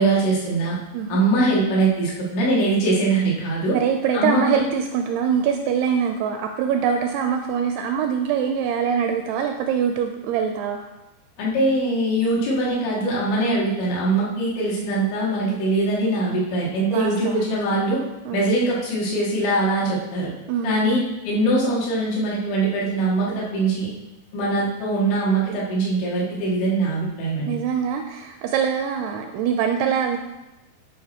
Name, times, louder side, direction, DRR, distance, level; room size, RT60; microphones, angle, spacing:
voice 1, 0.0-0.8 1.1-3.8 4.1-4.7 11.4-18.0 18.3-20.3 20.6-21.0 21.2-23.9 24.3-27.6, right 2 dB, 90° left, -5 dB, 4.5 m, -22 dB
voice 2, 3.7-10.9 16.9-17.6 18.3-18.5 20.5-21.0 27.5-30.2, right 7 dB, 85° right, 5 dB, 2.3 m, -24 dB
10.5 x 5.4 x 4.3 m, 0.99 s
omnidirectional pair, 5.1 m